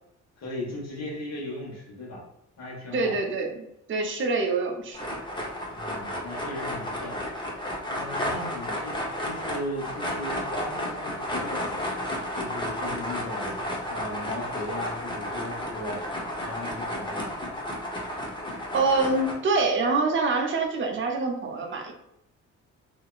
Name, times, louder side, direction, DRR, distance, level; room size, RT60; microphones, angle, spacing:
voice 1, 0.4-2.2 2.6-3.2 5.7-7.2 7.9-11.8 12.3-13.6 13.9-16.0 16.4-17.3, left 1 dB, 60° left, -4 dB, 1.5 m, -37 dB
voice 2, 2.9-5.1 18.7-21.9, right 3 dB, 40° right, 2 dB, 0.7 m, -25 dB
sound 1, 4.9-19.3, left 1 dB, 15° left, 0.7 m, -32 dB
2.8 x 2.7 x 2.3 m, 0.79 s
cardioid pair, 90°, 30 cm